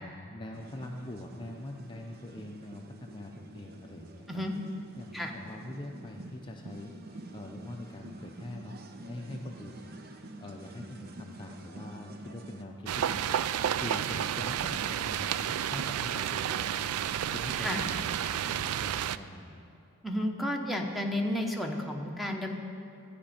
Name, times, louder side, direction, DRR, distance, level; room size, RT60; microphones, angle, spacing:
voice 1, 0.0-4.4 5.0-8.8 9.1-9.9 10.2-13.4 13.8-16.9 17.3-19.6, left 1 dB, 20° left, 1 dB, 0.5 m, -43 dB
sound 1, 0.5-12.6, right 1 dB, 45° right, 0.7 m, -47 dB
sound 2, 12.9-19.2, right 10 dB, 85° right, 0.3 m, -31 dB
voice 2, 20.0-22.5, left 1 dB, ahead, 2 dB, 0.9 m, -32 dB
13.5 x 5.2 x 8.6 m, 2.6 s
head